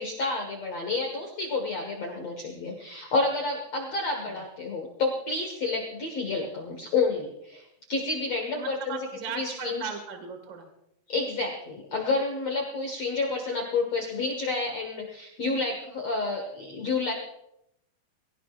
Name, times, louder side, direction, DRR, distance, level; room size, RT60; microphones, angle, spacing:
voice 1, 0.0-7.6 7.9-9.0 9.3-9.9 11.1-17.1, left 3 dB, 65° left, 1 dB, 1.6 m, -29 dB
voice 2, 8.5-10.7, right 5 dB, 55° right, 5 dB, 1.2 m, -38 dB
22.0 x 17.0 x 2.5 m, 0.81 s
omnidirectional pair, 5.4 m